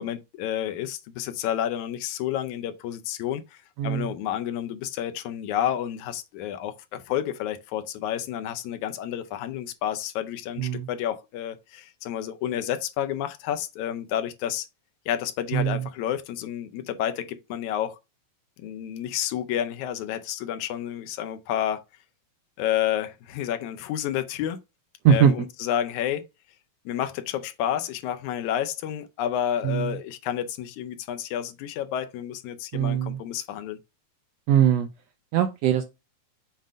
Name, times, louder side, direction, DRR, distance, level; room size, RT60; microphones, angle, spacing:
voice 1, 0.0-14.7 15.1-18.0 18.6-21.8 22.6-24.6 25.1-26.3 26.9-33.8, left 10 dB, 80° left, 2.0 m, -30 dB
voice 2, 3.8-4.1 10.6-10.9 15.5-15.9 25.0-25.3 29.6-30.0 32.7-33.2 34.5-34.9 35.3-35.8, right 9 dB, 75° right, 1.5 m, -21 dB
7.4 x 2.6 x 5.0 m
omnidirectional pair, 3.5 m